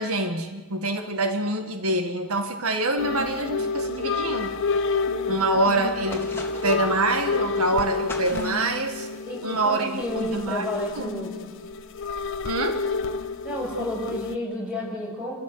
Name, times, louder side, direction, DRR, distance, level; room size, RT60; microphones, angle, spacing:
voice 1, 0.0-4.5 5.3-6.3 6.6-9.1 9.4-10.7 11.0-11.2 12.4-12.8, right 2 dB, 85° right, 6 dB, 1.8 m, -26 dB
sound 1, 3.0-14.4, left 4 dB, 60° left, 0.9 m, -29 dB
sound 2, 6.1-6.9 8.1-8.8, left 2 dB, 10° left, 2.7 m, -37 dB
voice 2, 9.3-11.5 13.4-15.3, left 1 dB, 5° right, -3 dB, 7.1 m, -31 dB
28.0 x 14.5 x 8.0 m, 1.3 s
head